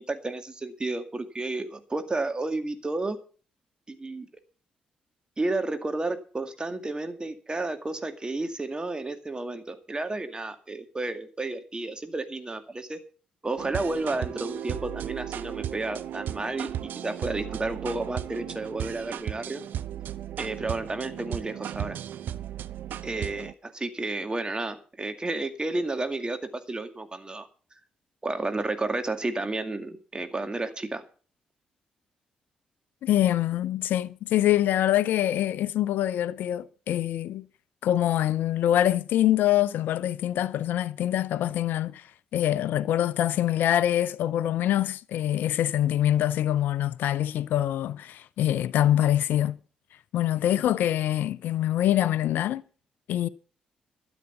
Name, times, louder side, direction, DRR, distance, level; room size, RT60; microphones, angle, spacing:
voice 1, 0.0-3.2 3.9-4.3 5.4-13.0 13.4-19.6 20.4-22.0 23.0-27.5 28.2-31.0, right 2 dB, 25° right, 2.1 m, -32 dB
sound 1, 13.6-23.5, right 10 dB, 60° right, 0.5 m, -35 dB
voice 2, 33.0-37.4 37.8-42.1 42.3-49.6 50.1-52.6 53.1-53.3, left 12 dB, 60° left, 0.5 m, -24 dB
13.0 x 8.1 x 6.9 m
figure-of-eight pair, 40°, 4 cm